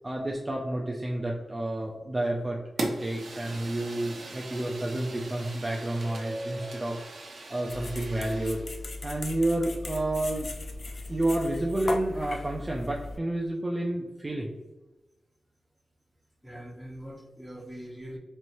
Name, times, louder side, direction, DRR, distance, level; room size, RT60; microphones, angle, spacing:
voice 1, 0.0-7.0 7.5-8.6 9.0-10.5 11.1-14.5, right 1 dB, 25° right, -1 dB, 0.5 m, -30 dB
Fire, 2.8-8.7, right 2 dB, 75° right, 0.8 m, -40 dB
sound 1, 4.5-9.1, right 1 dB, 50° right, 1.4 m, -45 dB
sound 2, 7.7-13.2, left 2 dB, 55° left, 0.4 m, -37 dB
voice 2, 16.4-18.2, equal, ahead, -3 dB, 1.2 m, -42 dB
4.3 x 3.1 x 2.6 m, 1.1 s
cardioid pair, 70°, 0 cm